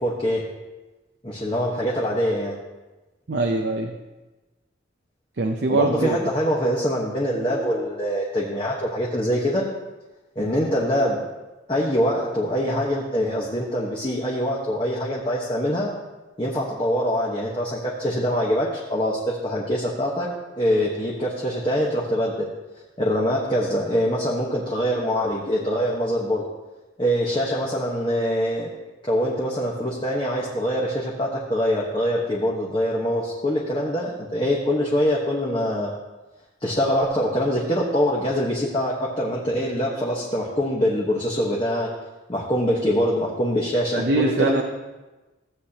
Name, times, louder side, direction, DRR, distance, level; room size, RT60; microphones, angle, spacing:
voice 1, 0.0-0.4 1.2-2.6 5.7-9.7 10.4-11.2 11.7-15.9 16.4-20.3 20.6-22.5 23.0-26.4 27.0-28.7 29.1-35.9 36.6-41.9 42.3-44.6, equal, 25° left, -5 dB, 1.1 m, -24 dB
voice 2, 3.3-4.0 5.4-6.2 43.9-44.6, right 2 dB, 60° right, 3 dB, 0.6 m, -22 dB
15.5 x 8.2 x 2.9 m, 1.1 s
head